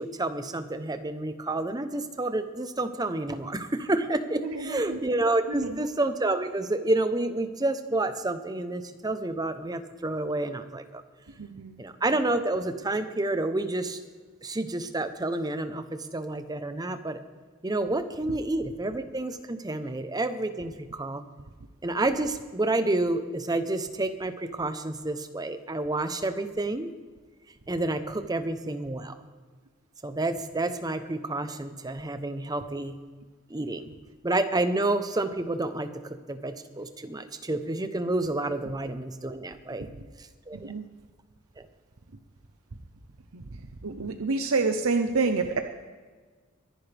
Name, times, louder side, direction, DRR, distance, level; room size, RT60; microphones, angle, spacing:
voice 1, 0.0-11.0 11.8-14.0 14.4-17.2 17.6-21.2 21.8-26.9 27.7-29.2 30.0-33.0 33.5-33.9 34.2-39.9 40.2-40.7 41.6-41.7, right 2 dB, 20° right, 10 dB, 0.8 m, -29 dB
voice 2, 4.4-5.0 5.5-5.8 11.4-11.8 18.3-18.4 40.5-40.9 43.3-43.4 43.8-45.6, right 4 dB, 85° right, 6 dB, 0.8 m, -28 dB
23.0 x 10.5 x 3.4 m, 1.5 s
head